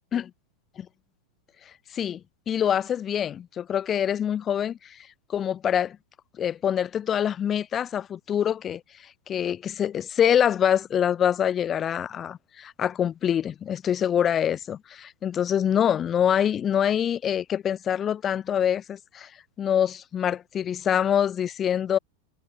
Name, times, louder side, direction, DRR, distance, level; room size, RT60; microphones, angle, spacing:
voice 1, 2.5-4.8 5.3-6.0 6.4-8.8 9.3-19.3 19.6-22.0, left 9 dB, 25° left, 6.8 m, -25 dB
figure-of-eight pair, 90°, 0 cm